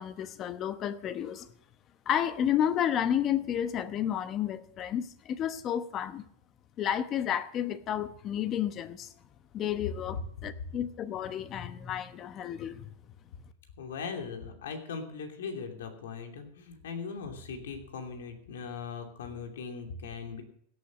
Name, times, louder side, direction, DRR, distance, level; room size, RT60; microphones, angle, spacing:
voice 1, 0.0-1.5 2.1-6.2 6.8-9.1 9.5-12.9, left 10 dB, 35° left, 0.9 m, -31 dB
voice 2, 13.8-20.4, left 5 dB, 90° left, 2.8 m, -39 dB
17.0 x 8.5 x 6.1 m
supercardioid pair, 135°, 0 cm